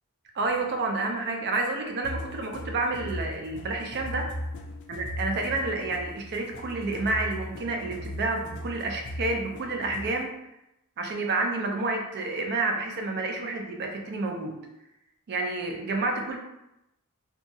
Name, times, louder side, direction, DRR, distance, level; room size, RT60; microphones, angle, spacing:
voice 1, 0.3-4.3 4.9-10.3 11.0-14.6 15.3-16.4, right 3 dB, 50° right, 3 dB, 0.4 m, -29 dB
sound 1, 2.0-10.2, left 1 dB, 55° left, 0.4 m, -38 dB
2.7 x 2.3 x 2.6 m, 0.87 s
head